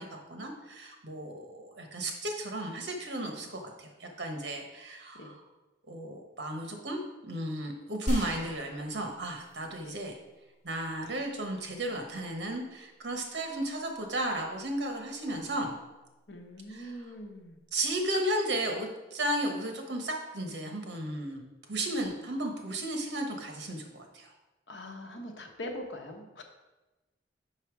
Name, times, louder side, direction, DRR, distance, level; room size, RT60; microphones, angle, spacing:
voice 1, 0.0-5.4 5.9-10.2 10.6-15.7 16.7-17.1 17.7-21.4 21.7-24.3, right 1 dB, 70° right, 3 dB, 1.2 m, -34 dB
sound 1, 8.1-9.8 10.3-10.4, equal, 40° left, 1.9 m, -35 dB
voice 2, 16.3-17.6 24.7-26.4, left 1 dB, 80° left, 3 dB, 1.0 m, -42 dB
5.7 x 5.6 x 4.7 m, 1.1 s
head